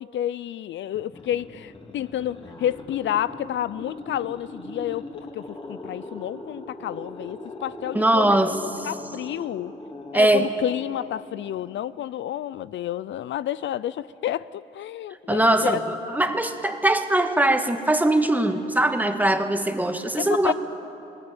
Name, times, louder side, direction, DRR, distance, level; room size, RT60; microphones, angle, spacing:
voice 1, 0.0-5.4 5.7-8.6 8.8-9.7 10.1-15.8 20.2-20.5, left 11 dB, 65° left, 17 dB, 0.5 m, -30 dB
sound 1, 0.9-12.1, left 2 dB, 25° left, 3.2 m, -40 dB
voice 2, 7.9-8.9 10.1-10.5 15.3-20.5, right 1 dB, 10° right, 6 dB, 1.8 m, -21 dB
21.5 x 19.5 x 9.0 m, 2.9 s
cardioid pair, 85°, 20 cm